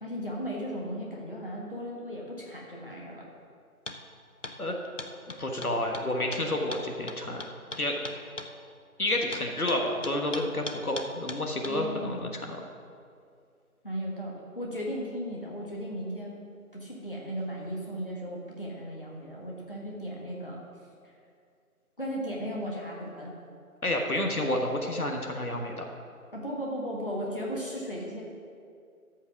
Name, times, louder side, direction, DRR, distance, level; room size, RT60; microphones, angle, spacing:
voice 1, 0.0-3.2 11.7-12.3 13.8-16.4 16.7-20.6 21.0-21.1 22.0-23.3 26.3-28.2, equal, 35° left, -3 dB, 1.5 m, -36 dB
sound 1, 3.9-4.0 4.4-4.6 5.0-8.5 9.3-11.8, left 2 dB, 55° left, 0.8 m, -39 dB
voice 2, 5.4-7.4 7.8-8.0 9.0-12.6 23.8-25.8, left 1 dB, 75° left, 2 dB, 1.5 m, -30 dB
13.5 x 5.5 x 6.0 m, 2.3 s
figure-of-eight pair, 180°, 44 cm